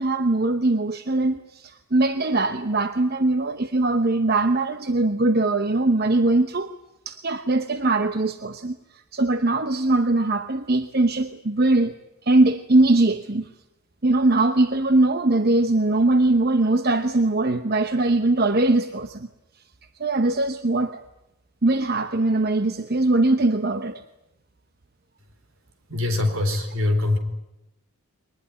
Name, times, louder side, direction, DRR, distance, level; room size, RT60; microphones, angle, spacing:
voice 1, 0.0-6.7 7.1-8.8 9.1-11.9 12.2-13.5 14.0-19.3 20.0-21.0 21.6-24.0, right 2 dB, 45° right, 0.9 m, -21 dB
voice 2, 25.9-27.2, left 2 dB, 70° right, 4.2 m, -23 dB
23.0 x 20.0 x 10.0 m
head